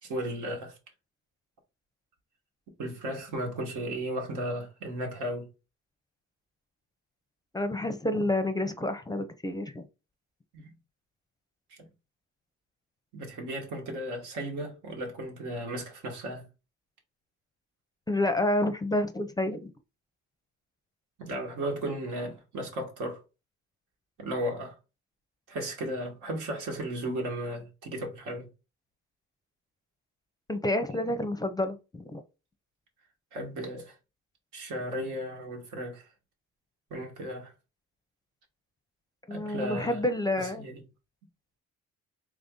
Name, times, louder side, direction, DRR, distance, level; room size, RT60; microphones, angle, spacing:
voice 1, 0.0-0.8 2.8-5.5 10.5-10.7 13.1-16.5 21.2-23.2 24.2-24.8 25.5-28.5 33.3-33.9 34.5-36.1 36.9-37.5 39.3-40.0 40.4-40.8, right 1 dB, 90° right, 1.4 m, -35 dB
voice 2, 7.5-9.8 18.1-19.7 30.5-32.2 39.3-40.6, left 1 dB, 15° left, 0.5 m, -29 dB
3.4 x 2.6 x 3.6 m
cardioid pair, 90°, 30 cm